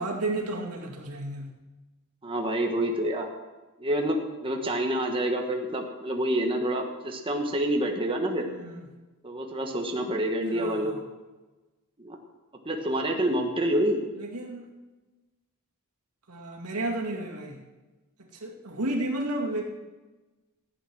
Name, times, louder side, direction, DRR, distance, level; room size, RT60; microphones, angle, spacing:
voice 1, 0.0-1.5 8.5-8.8 10.5-11.0 14.2-14.7 16.3-17.6 18.4-19.6, right 2 dB, 90° right, 0 dB, 2.2 m, -32 dB
voice 2, 2.2-3.3 3.8-8.5 9.2-10.9 12.0-12.2 12.6-14.0, right 1 dB, 25° right, 1 dB, 1.3 m, -27 dB
15.0 x 8.9 x 6.2 m, 1.2 s
head